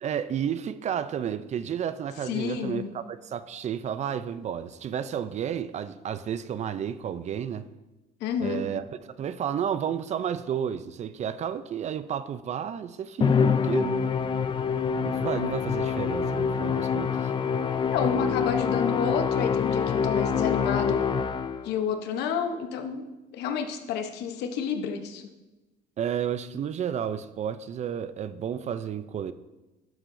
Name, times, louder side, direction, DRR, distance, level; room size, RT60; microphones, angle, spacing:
voice 1, 0.0-7.7 8.4-8.8 9.2-14.1 15.0-17.3 26.0-29.3, right 8 dB, 45° right, 13 dB, 0.4 m, -31 dB
voice 2, 2.3-2.9 8.2-8.6 17.8-21.1 21.6-23.0 23.3-25.3, left 7 dB, 80° left, 7 dB, 0.9 m, -29 dB
Musical instrument, 13.2-21.8, left 6 dB, 30° left, 0.4 m, -26 dB
11.5 x 7.3 x 2.6 m, 1.1 s
cardioid pair, 110°, 17 cm